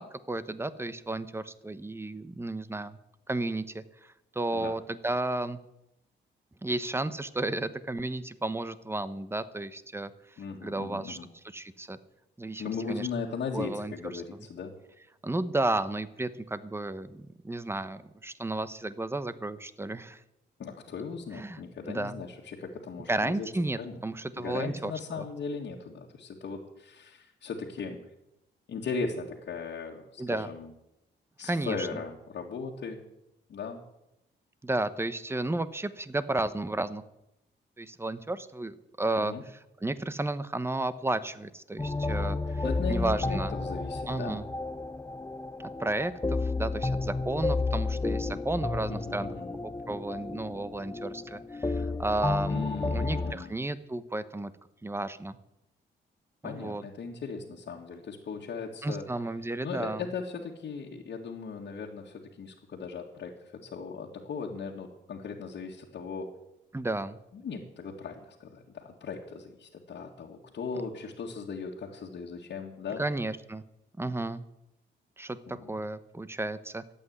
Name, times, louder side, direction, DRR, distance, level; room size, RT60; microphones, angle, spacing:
voice 1, 0.0-3.0 3.3-5.6 6.6-10.1 10.6-11.2 11.5-12.0 12.4-13.1 13.5-14.2 15.2-20.2 21.3-21.6 21.9-22.1 23.1-24.9 25.2-25.3 30.2-30.5 31.4-31.9 34.6-37.0 37.8-39.3 39.8-43.5 44.1-44.4 45.8-49.3 49.9-54.5 54.8-55.4 56.4-56.8 58.8-60.0 66.7-67.2 73.0-73.6 74.0-74.4 75.2-76.9, right 2 dB, 10° right, 14 dB, 1.0 m, -33 dB
voice 2, 10.4-11.3 12.6-14.7 20.6-23.5 23.8-24.0 24.4-28.0 28.7-30.7 31.4-33.0 33.5-33.8 39.2-39.4 42.6-44.4 48.9-49.5 52.5-53.5 56.4-59.0 59.6-66.3 67.3-73.0 75.5-75.8, left 5 dB, 65° left, -3 dB, 2.0 m, -38 dB
sound 1, 41.8-53.3, left 3 dB, 15° left, 0.8 m, -32 dB
13.0 x 8.5 x 9.5 m, 0.86 s
cardioid pair, 80°, 19 cm